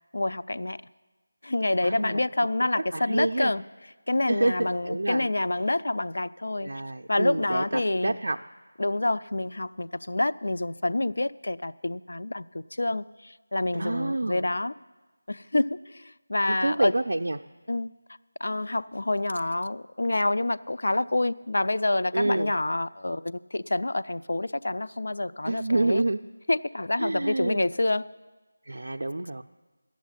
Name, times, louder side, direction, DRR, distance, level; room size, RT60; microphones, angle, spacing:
voice 1, 0.1-0.8 1.4-3.6 4.1-6.7 7.1-8.2 8.8-14.7 15.3-16.9 17.7-17.9 18.4-26.0 26.5-28.0, left 2 dB, 75° left, 15 dB, 0.3 m, -27 dB
voice 2, 1.8-2.2 2.7-3.5 4.3-5.3 6.6-8.4 13.7-14.5 16.6-17.4 22.1-22.5 25.4-26.2 27.0-27.6 28.6-29.4, right 2 dB, 70° right, 5 dB, 0.4 m, -28 dB
11.0 x 7.2 x 8.9 m, 1.3 s
figure-of-eight pair, 170°, 0 cm